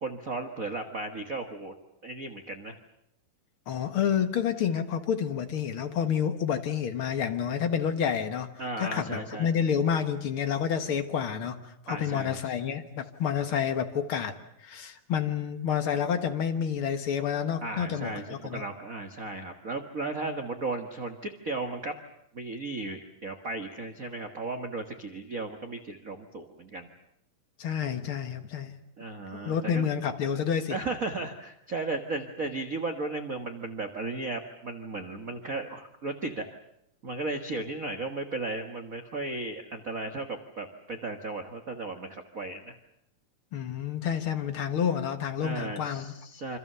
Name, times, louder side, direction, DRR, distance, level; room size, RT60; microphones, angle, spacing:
voice 1, 0.0-1.7 2.0-2.8 8.6-9.5 11.9-12.4 17.6-21.9 22.3-26.9 29.0-29.9 30.7-36.5 37.0-42.8 45.4-46.6, right 3 dB, 50° right, 6 dB, 0.9 m, -35 dB
voice 2, 3.7-8.5 8.8-18.6 27.6-28.8 29.3-30.8 43.5-46.1, left 8 dB, 55° left, 7 dB, 1.6 m, -29 dB
27.5 x 26.0 x 6.9 m, 0.79 s
omnidirectional pair, 4.1 m